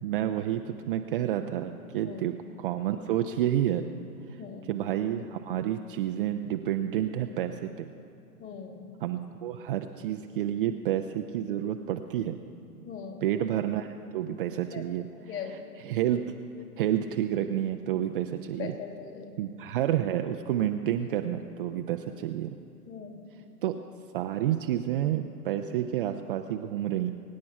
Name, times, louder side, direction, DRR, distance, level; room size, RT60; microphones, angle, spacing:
voice 1, 0.0-3.8 4.7-7.9 9.0-12.4 13.2-13.9 14.1-15.6 15.8-16.3 16.8-18.7 19.4-22.6 23.6-23.8 24.1-27.1, right 11 dB, 35° right, 6 dB, 0.5 m, -29 dB
voice 2, 4.4-4.7 8.4-8.9 12.8-13.3 14.7-14.8 15.2-15.5 18.6-19.4 22.9-23.2, left 7 dB, 25° left, 4 dB, 2.0 m, -40 dB
23.5 x 9.5 x 5.8 m, 2.5 s
figure-of-eight pair, 110°, 47 cm